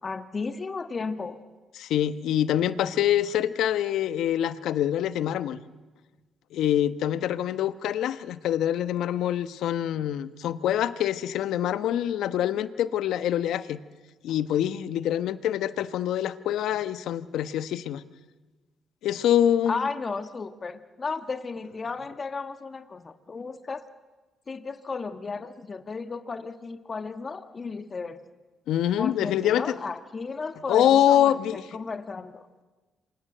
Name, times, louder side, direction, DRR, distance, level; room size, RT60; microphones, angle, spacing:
voice 1, 0.0-1.4 19.7-23.8 24.5-28.2 29.0-32.5, left 4 dB, 35° left, 9 dB, 1.5 m, -34 dB
voice 2, 1.8-5.6 6.5-13.8 14.2-18.0 19.0-19.8 28.7-29.8 30.7-31.6, left 11 dB, 80° left, 13 dB, 1.1 m, -25 dB
28.0 x 25.0 x 7.9 m, 1.3 s
cardioid pair, 90°, 0 cm